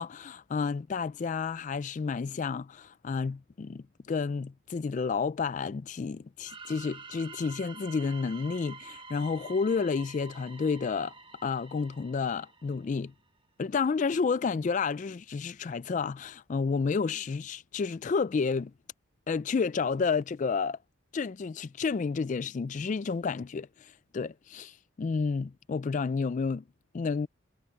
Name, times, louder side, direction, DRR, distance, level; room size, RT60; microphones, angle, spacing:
voice 1, 0.0-11.1 11.4-13.1 13.6-18.7 19.3-20.8 21.1-26.6 26.9-27.3, left 5 dB, 35° left, 0.3 m, -30 dB
sound 1, 6.4-13.1, right 4 dB, 25° right, 1.1 m, -48 dB
head